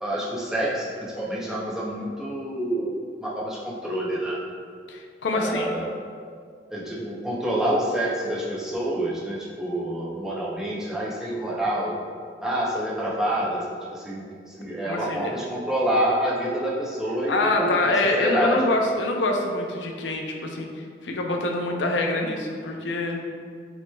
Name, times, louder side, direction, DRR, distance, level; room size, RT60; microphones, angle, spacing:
voice 1, 0.0-4.4 5.3-6.0 6.7-11.9 12.4-18.6, right 1 dB, 5° right, -6 dB, 0.6 m, -27 dB
voice 2, 4.9-5.7 14.8-15.3 17.3-23.2, left 2 dB, 75° left, 1 dB, 0.6 m, -25 dB
7.0 x 3.0 x 2.3 m, 2.1 s
head